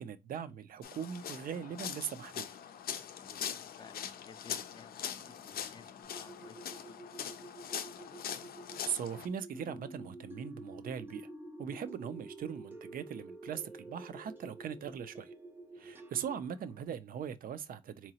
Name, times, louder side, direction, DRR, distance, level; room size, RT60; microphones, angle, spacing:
voice 1, 0.0-2.5 8.9-11.3 11.6-15.3 15.8-18.1, right 8 dB, 70° right, 0.4 m, -40 dB
sound 1, 0.8-9.3, left 9 dB, 85° left, 0.4 m, -42 dB
voice 2, 3.2-7.0 15.8-15.9, left 5 dB, 30° left, 0.4 m, -57 dB
sound 2, 6.0-16.4, right 3 dB, 90° right, 1.3 m, -51 dB
sound 3, 9.5-16.8, right 1 dB, 15° right, 0.6 m, -52 dB
3.8 x 2.9 x 2.8 m
wide cardioid pair, 155°, 15 cm